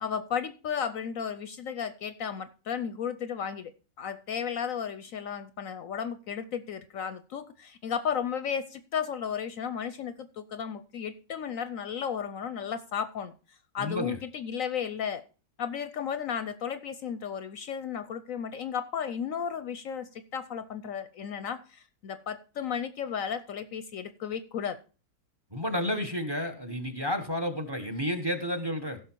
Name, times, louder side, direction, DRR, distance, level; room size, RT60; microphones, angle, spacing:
voice 1, 0.0-3.7 4.0-13.3 13.7-15.2 15.6-24.8, left 7 dB, 65° left, 13 dB, 1.0 m, -34 dB
voice 2, 13.8-14.1 25.5-29.0, equal, 15° right, 8 dB, 1.2 m, -31 dB
16.0 x 6.2 x 4.5 m, 0.35 s
omnidirectional pair, 1.7 m